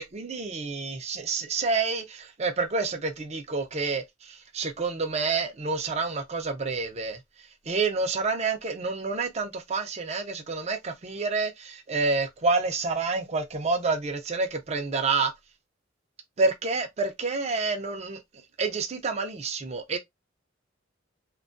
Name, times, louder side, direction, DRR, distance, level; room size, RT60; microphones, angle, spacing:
voice 1, 0.0-7.2 7.7-15.3 16.4-18.2 18.6-20.0, right 4 dB, 35° right, 0.5 m, -28 dB
2.6 x 2.3 x 2.4 m
head